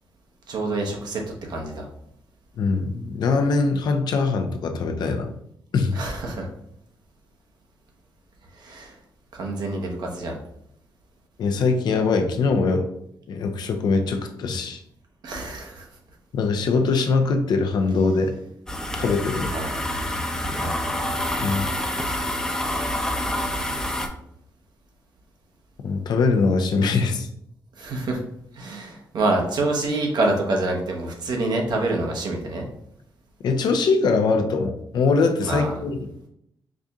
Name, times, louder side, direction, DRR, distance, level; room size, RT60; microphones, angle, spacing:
voice 1, 0.5-1.2 1.5-1.9 5.9-6.5 8.6-8.9 9.3-10.4 15.2-15.9 19.5-19.9 20.5-20.9 27.8-28.2 28.5-32.7 35.4-35.8, right 2 dB, 70° right, 1 dB, 0.9 m, -26 dB
voice 2, 2.6-5.3 5.7-6.0 11.4-12.9 13.3-14.8 16.3-18.3 19.0-19.5 21.4-21.7 25.8-27.3 33.4-36.1, left 4 dB, 70° left, 6 dB, 0.5 m, -22 dB
sound 1, 18.7-24.1, left 1 dB, 10° left, 0.6 m, -27 dB
4.8 x 2.6 x 2.4 m, 0.73 s
cardioid pair, 70°, 7 cm